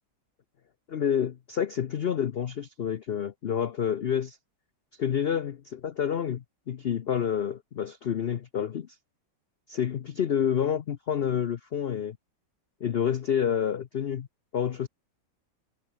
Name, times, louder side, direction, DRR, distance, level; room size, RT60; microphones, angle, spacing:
voice 1, 0.9-4.4 4.9-5.5 5.8-8.9 9.7-12.2 12.8-14.3 14.5-14.9, left 8 dB, 75° left, 0.5 m, -28 dB
omnidirectional pair, 1.9 m